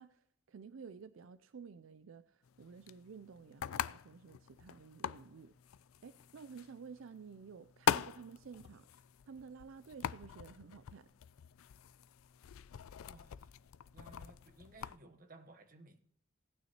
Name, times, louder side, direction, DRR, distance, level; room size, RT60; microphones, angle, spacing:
voice 1, 0.0-5.5 6.0-11.1, right 5 dB, 75° right, 0.4 m, -52 dB
sound 1, 2.5-15.0, left 9 dB, 90° left, 0.4 m, -42 dB
voice 2, 13.1-13.5 13.9-16.0, right 2 dB, 40° right, 1.1 m, -58 dB
17.5 x 9.3 x 3.0 m
head